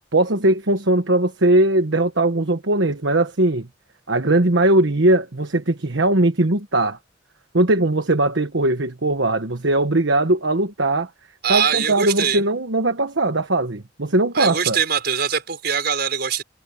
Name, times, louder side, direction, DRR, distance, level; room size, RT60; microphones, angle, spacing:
voice 1, 0.1-3.7 4.1-7.0 7.5-11.1 11.5-14.8, right 2 dB, 70° right, 1.3 m, -19 dB
voice 2, 11.4-12.4 14.3-16.4, right 7 dB, 55° right, 5.9 m, -22 dB
head